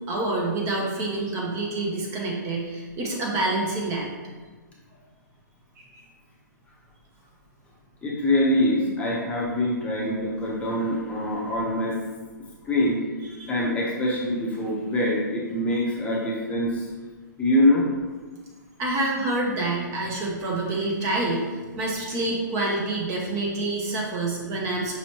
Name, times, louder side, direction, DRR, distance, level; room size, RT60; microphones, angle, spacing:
voice 1, 0.1-4.1 5.9-6.0 13.3-13.5 18.8-25.0, right 2 dB, 25° right, -2 dB, 0.8 m, -27 dB
voice 2, 8.0-12.0 12.7-13.0 13.5-16.9 17.4-17.9, left 1 dB, 10° left, -4 dB, 0.8 m, -24 dB
5.4 x 3.0 x 2.9 m, 1.3 s
hypercardioid pair, 135°, 11 cm